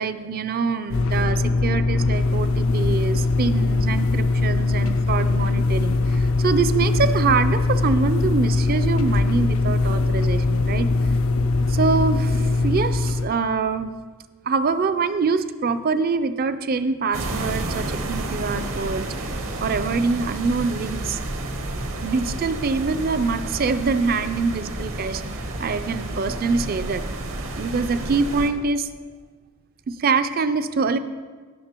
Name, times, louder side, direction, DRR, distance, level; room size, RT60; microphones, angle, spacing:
voice 1, 0.0-10.9 11.7-13.9 14.5-19.3 19.6-21.2 22.0-25.2 25.6-27.0 27.5-28.9 29.9-31.0, right 4 dB, 45° right, 11 dB, 0.4 m, -24 dB
sound 1, 0.9-13.3, left 3 dB, 75° left, 0.5 m, -21 dB
sound 2, 17.1-28.5, right 1 dB, 65° right, 1.0 m, -30 dB
16.5 x 6.1 x 2.9 m, 1.5 s
head